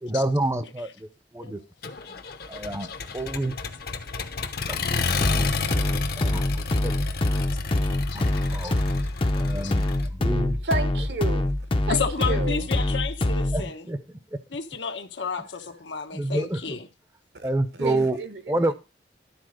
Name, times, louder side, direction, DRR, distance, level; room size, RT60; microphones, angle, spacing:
voice 1, 0.0-1.1 1.3-1.6 2.1-2.9 3.1-3.5 4.7-5.5 6.1-6.9 8.1-8.8 9.4-10.6 13.5-14.0 16.1-16.8 17.4-18.2 18.5-18.7, right 1 dB, 15° right, 0.6 m, -28 dB
Accelerating revving vroom, 1.8-10.1, left 4 dB, 55° left, 0.9 m, -31 dB
sound 1, 5.2-13.7, left 1 dB, 30° left, 0.6 m, -25 dB
voice 2, 10.6-11.5 11.8-12.7 17.3-18.7, right 2 dB, 65° right, 1.1 m, -31 dB
voice 3, 11.9-13.9 14.5-16.9, left 5 dB, 80° left, 1.1 m, -31 dB
12.0 x 4.2 x 6.3 m
head